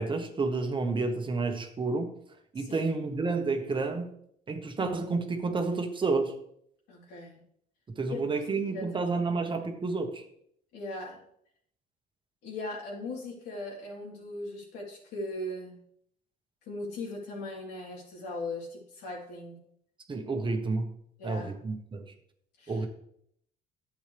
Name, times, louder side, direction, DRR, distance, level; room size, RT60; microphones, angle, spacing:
voice 1, 0.0-2.1 2.5-4.1 4.5-6.4 7.9-10.2 20.1-20.9 21.2-22.1 22.7-22.9, right 3 dB, 30° right, 5 dB, 1.2 m, -30 dB
voice 2, 6.9-7.4 8.1-8.2 8.6-9.0 10.7-11.2 12.4-15.8 16.7-19.6 21.2-21.5 22.6-22.8, left 2 dB, 80° left, -3 dB, 3.8 m, -39 dB
11.0 x 8.2 x 3.4 m, 0.69 s
cardioid pair, 110°, 17 cm